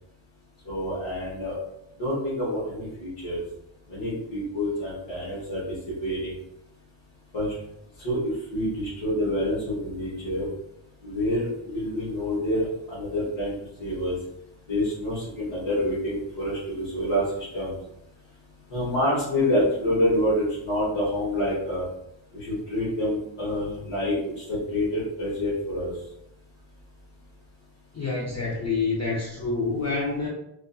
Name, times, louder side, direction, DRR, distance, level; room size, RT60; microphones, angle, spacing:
voice 1, 0.6-1.6 2.0-3.4 3.9-6.3 7.3-7.5 8.0-10.5 11.0-14.2 14.7-17.8 18.7-21.9 22.3-25.9, left 1 dB, 65° left, -8 dB, 1.1 m, -27 dB
voice 2, 27.9-30.3, left 4 dB, 35° left, -4 dB, 0.6 m, -27 dB
2.5 x 2.3 x 2.3 m, 0.81 s
cardioid pair, 60°, 49 cm